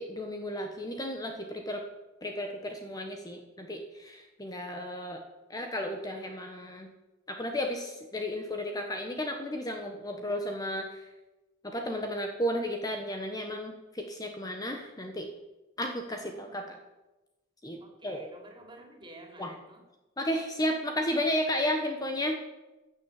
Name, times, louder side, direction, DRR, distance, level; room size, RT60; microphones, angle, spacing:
voice 1, 0.0-1.8 2.2-5.2 5.5-6.9 7.3-11.0 11.6-15.3 15.8-16.8 17.6-18.2 19.4-19.5 20.2-22.4, equal, 20° left, 3 dB, 1.2 m, -33 dB
voice 2, 17.8-19.8, right 1 dB, 25° right, 2 dB, 3.1 m, -50 dB
14.5 x 7.1 x 8.2 m, 1.1 s
head